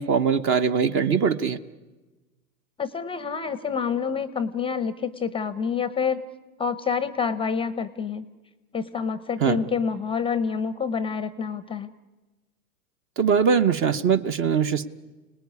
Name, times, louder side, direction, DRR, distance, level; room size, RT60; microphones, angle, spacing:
voice 1, 0.0-1.6 9.4-9.6 13.2-14.9, right 6 dB, 25° right, 12 dB, 0.9 m, -21 dB
voice 2, 2.8-6.3 6.6-8.3 8.7-11.9, left 6 dB, 10° left, 14 dB, 0.8 m, -27 dB
30.0 x 19.5 x 9.7 m, 1.2 s
hypercardioid pair, 120°, 47 cm